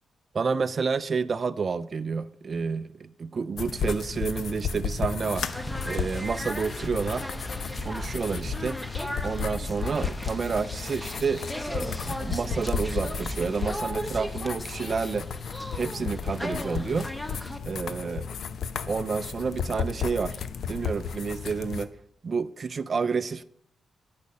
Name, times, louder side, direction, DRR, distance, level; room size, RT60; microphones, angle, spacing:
voice 1, 0.3-7.3 7.8-8.8 9.2-11.4 11.7-15.3 15.8-17.1 17.7-18.3 18.9-20.4 20.7-21.9 22.2-23.4, right 5 dB, 45° right, 0.4 m, -29 dB
sound 1, 3.6-21.8, left 6 dB, 70° left, 0.6 m, -34 dB
sound 2, 5.3-17.6, equal, 10° left, 0.9 m, -36 dB
9.5 x 6.2 x 5.3 m
cardioid pair, 90°, 0 cm